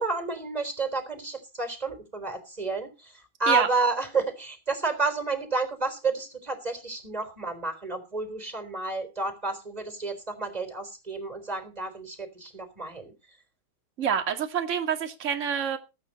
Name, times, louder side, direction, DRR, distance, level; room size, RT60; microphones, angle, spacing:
voice 1, 0.0-13.1, right 3 dB, 10° right, 3.2 m, -30 dB
voice 2, 14.0-15.8, right 8 dB, 30° right, 1.4 m, -27 dB
20.5 x 9.2 x 4.2 m
omnidirectional pair, 4.9 m